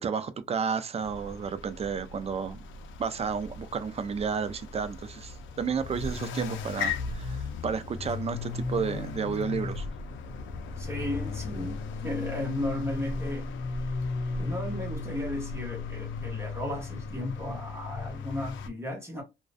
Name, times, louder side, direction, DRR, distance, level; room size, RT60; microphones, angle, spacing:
voice 1, 0.0-2.6 3.0-9.9, right 6 dB, 30° right, 0.3 m, -32 dB
sound 1, 1.0-18.7, left 4 dB, 75° left, 0.5 m, -36 dB
voice 2, 10.8-13.5 14.4-19.2, left 1 dB, 10° right, 0.9 m, -35 dB
2.3 x 2.1 x 2.4 m
cardioid pair, 90°, 20 cm